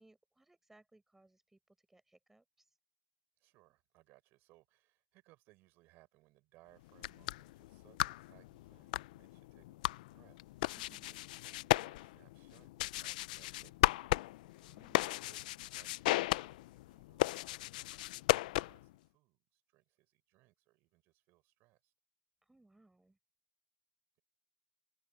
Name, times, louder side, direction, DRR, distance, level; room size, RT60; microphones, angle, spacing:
voice 1, 0.0-2.7 10.8-11.2 14.6-15.1 22.4-23.2, right 2 dB, 5° right, 6.4 m, -66 dB
voice 2, 3.3-14.1 14.5-21.9 24.1-24.2, right 20 dB, 55° right, 6.7 m, -68 dB
sound 1, 6.9-18.9, left 18 dB, 80° left, 0.5 m, -36 dB
open air
supercardioid pair, 120°, 4 cm